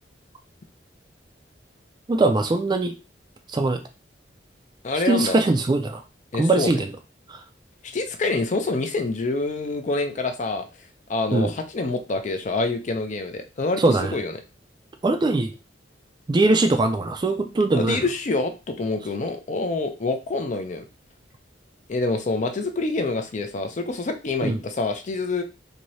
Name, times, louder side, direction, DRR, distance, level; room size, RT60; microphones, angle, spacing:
voice 1, 2.1-2.9 3.5-3.8 5.1-6.0 6.4-6.9 7.3-7.4 11.3-11.5 13.8-14.1 15.0-15.5 16.3-18.0 24.4-24.6, right 2 dB, 25° right, 7 dB, 0.3 m, -21 dB
voice 2, 4.8-5.4 6.3-6.7 7.8-10.7 11.1-14.4 17.7-20.8 21.9-25.4, left 3 dB, 40° left, 7 dB, 0.4 m, -26 dB
2.7 x 2.7 x 3.1 m, 0.30 s
head